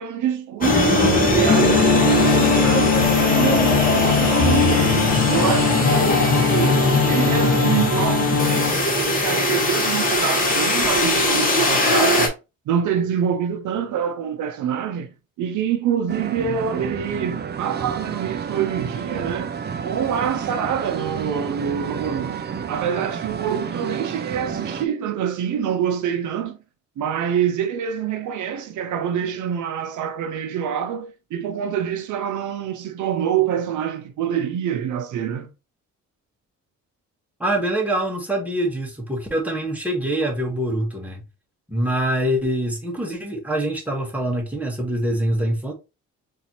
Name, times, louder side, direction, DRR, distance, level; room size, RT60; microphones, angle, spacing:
voice 1, 0.0-5.0 5.3-6.8 7.1-12.4 12.7-15.1 15.4-19.5 19.8-22.4 22.7-26.6 27.0-35.5, right 8 dB, 75° right, 0.7 m, -26 dB
sound 1, 0.6-12.3, left 1 dB, 30° left, 1.3 m, -20 dB
sound 2, 1.5-8.7, left 8 dB, 55° left, 0.5 m, -21 dB
sound 3, 16.1-24.9, right 7 dB, 35° right, 0.5 m, -30 dB
voice 2, 37.4-41.2 41.7-45.7, right 1 dB, 5° right, 1.3 m, -24 dB
3.9 x 2.7 x 2.9 m
cardioid pair, 90°, 30 cm